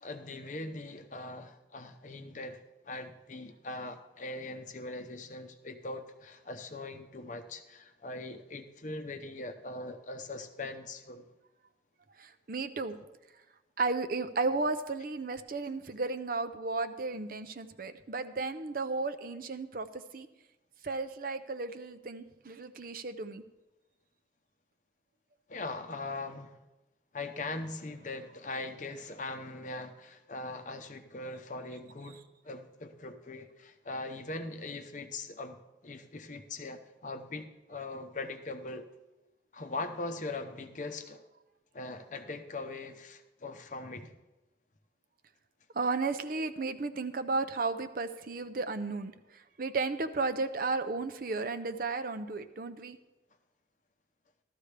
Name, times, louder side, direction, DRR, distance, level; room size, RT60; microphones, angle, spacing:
voice 1, 0.0-2.6 2.9-11.3 25.5-26.6 27.1-32.2 32.4-38.9 39.5-41.2 41.7-44.1, left 2 dB, 40° left, 7 dB, 0.7 m, -41 dB
voice 2, 12.2-13.0 13.8-20.3 20.8-23.4 45.7-49.1 49.6-53.0, right 3 dB, 50° right, 9 dB, 0.6 m, -34 dB
14.5 x 12.5 x 3.3 m, 1.0 s
head